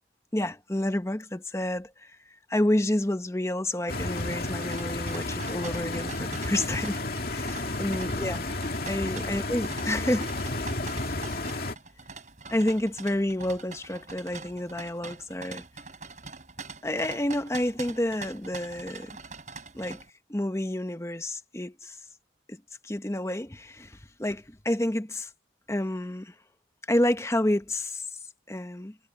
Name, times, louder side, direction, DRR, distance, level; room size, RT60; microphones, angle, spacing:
voice 1, 0.3-7.0 7.3-8.4 8.9-10.3 11.1-11.2 12.5-15.6 16.8-19.2 19.7-20.0 20.3-22.0 22.5-25.3 25.7-26.3 26.9-28.1 28.5-29.0, left 1 dB, 15° left, 0.9 m, -29 dB
Stream, 3.9-11.7, left 2 dB, 50° left, 2.3 m, -32 dB
sound 1, 4.2-20.1, right 4 dB, 40° right, 3.6 m, -44 dB
head